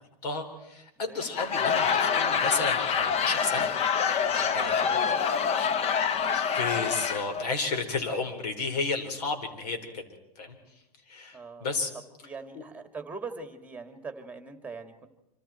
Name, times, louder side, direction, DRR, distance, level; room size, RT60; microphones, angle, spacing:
voice 1, 0.2-3.7 4.0-5.0 6.5-10.1 10.4-10.5 11.1-11.9 12.5-12.6, left 3 dB, 75° left, 6 dB, 4.7 m, -32 dB
Laughter / Crowd, 1.2-7.4, left 7 dB, 30° left, 1.1 m, -26 dB
voice 2, 1.6-2.0 4.6-5.8 11.3-11.8 12.2-15.1, right 4 dB, 5° right, 8 dB, 2.4 m, -42 dB
26.0 x 26.0 x 4.5 m, 0.92 s
hypercardioid pair, 130°, 20 cm